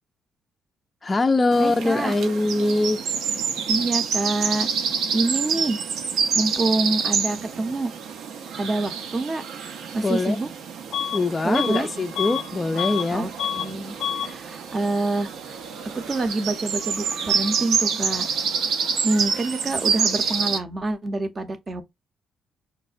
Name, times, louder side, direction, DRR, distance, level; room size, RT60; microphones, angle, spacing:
voice 1, 1.0-3.0 10.0-10.4 11.1-13.3, left 2 dB, 25° left, 0.3 m, -22 dB
sound 1, 1.5-20.6, right 6 dB, 80° right, 0.5 m, -27 dB
voice 2, 1.6-2.1 3.7-4.7 5.1-5.8 6.3-7.9 8.6-9.4 9.9-10.5 11.4-11.9 13.1-18.3 19.0-21.8, right 2 dB, 35° right, 0.6 m, -26 dB
Bus / Alarm, 10.9-11.2 11.5-13.1 13.4-13.7 14.0-14.3, left 9 dB, 90° left, 0.4 m, -28 dB
5.5 x 2.1 x 2.4 m
cardioid pair, 90°, 0 cm